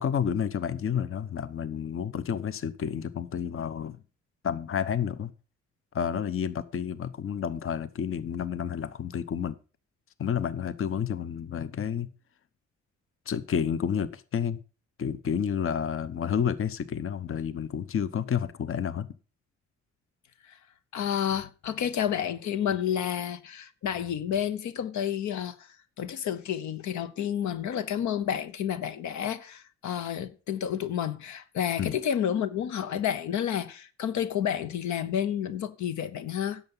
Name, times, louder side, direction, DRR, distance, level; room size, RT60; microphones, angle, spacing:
voice 1, 0.0-4.0 4.4-5.3 5.9-9.6 10.2-12.1 13.3-14.6 15.0-19.1 31.8-31.9, left 8 dB, 45° left, 0.9 m, -30 dB
voice 2, 20.9-36.6, left 9 dB, 75° left, 0.9 m, -30 dB
10.5 x 7.0 x 5.5 m
supercardioid pair, 65°, 29 cm